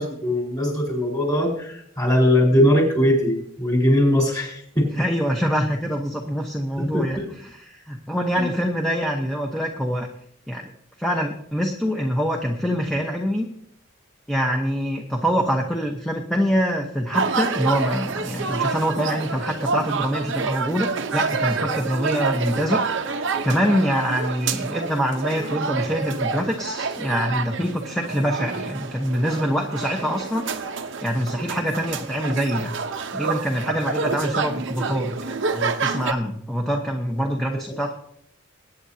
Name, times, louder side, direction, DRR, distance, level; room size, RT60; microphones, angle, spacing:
voice 1, 0.0-5.0 6.8-7.3 8.4-8.5, left 1 dB, 20° left, -1 dB, 4.3 m, -20 dB
voice 2, 4.9-10.1 10.5-10.7 11.0-13.5 14.3-20.9 21.1-32.7 33.1-37.9, equal, ahead, 1 dB, 1.0 m, -25 dB
sound 1, 17.1-36.1, right 4 dB, 65° right, 0.9 m, -28 dB
22.0 x 9.4 x 2.8 m, 0.69 s
head